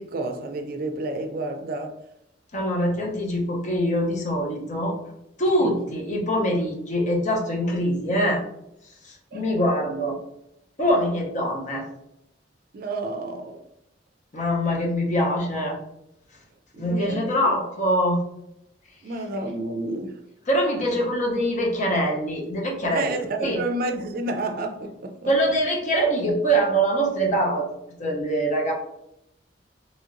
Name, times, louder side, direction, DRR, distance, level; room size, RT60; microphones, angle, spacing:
voice 1, 0.0-2.0 5.6-5.7 6.5-6.6 9.3-9.5 12.7-13.6 16.7-17.3 17.6-17.7 19.0-20.2 22.9-25.3, right 2 dB, 55° right, 0.4 m, -30 dB
voice 2, 2.5-5.0 5.4-8.4 9.0-10.2 10.8-11.9 14.3-15.8 16.8-18.2 20.5-23.1 23.4-23.6 25.3-27.7 28.0-28.7, equal, 45° left, 0.7 m, -23 dB
3.0 x 2.8 x 2.5 m
head